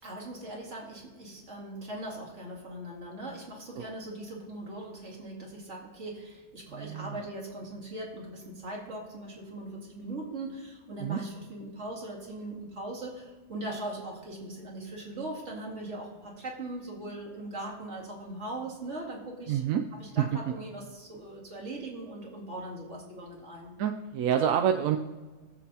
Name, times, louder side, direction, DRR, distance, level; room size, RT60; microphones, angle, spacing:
voice 1, 0.0-19.6 19.9-23.8, right 1 dB, 65° right, -2 dB, 2.4 m, -40 dB
voice 2, 6.7-7.1 11.0-11.2 19.5-19.8 20.2-20.3 23.8-25.0, right 9 dB, 90° right, 5 dB, 1.0 m, -27 dB
18.5 x 7.3 x 2.9 m, 1.3 s
omnidirectional pair, 1.4 m